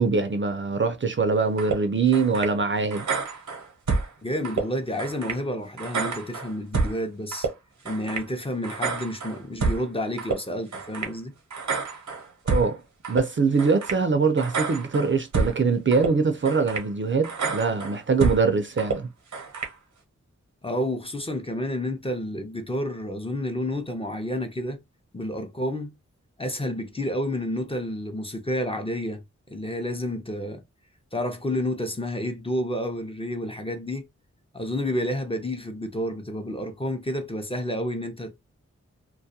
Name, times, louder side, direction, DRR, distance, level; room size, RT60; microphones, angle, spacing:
voice 1, 0.0-3.1 12.5-12.8 13.1-19.1, right 4 dB, 45° right, 0.5 m, -23 dB
sound 1, 1.6-1.8 2.1-2.5 2.9-4.1 4.4-4.6 5.0-5.4 5.8-7.0 7.3-7.5 7.9-8.3 8.6-9.8 10.2-10.4 10.7-11.1 11.5-12.7 13.0-13.2 13.6-14.0 14.4-15.6 15.9-16.1 16.5-16.9 17.2-18.4 18.8-19.0 19.3-19.7, right 4 dB, 85° right, 0.8 m, -28 dB
voice 2, 4.2-7.5 7.8-11.3 20.6-24.8 25.1-25.9 26.4-30.6 31.1-34.0 34.5-38.4, left 1 dB, 20° left, 0.6 m, -30 dB
2.3 x 2.2 x 2.7 m
cardioid pair, 50°, 29 cm